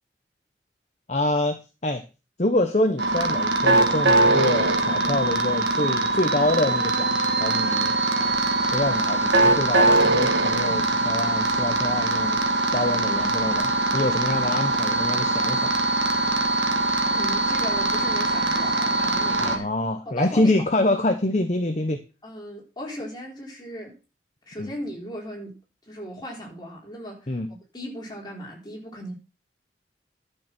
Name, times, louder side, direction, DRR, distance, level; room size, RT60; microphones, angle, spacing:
voice 1, 1.1-1.6 1.8-2.0 2.4-7.1 7.4-7.9 8.7-12.4 12.7-15.7 19.4-22.0 24.6-24.7 27.3-27.5, left 1 dB, 40° left, 1.0 m, -26 dB
sound 1, 3.0-19.6, right 2 dB, 90° right, 1.7 m, -22 dB
voice 2, 17.1-19.7 20.1-20.6 22.2-24.0 24.5-25.6 25.9-29.2, equal, 25° left, 4.1 m, -37 dB
11.5 x 6.8 x 6.0 m
head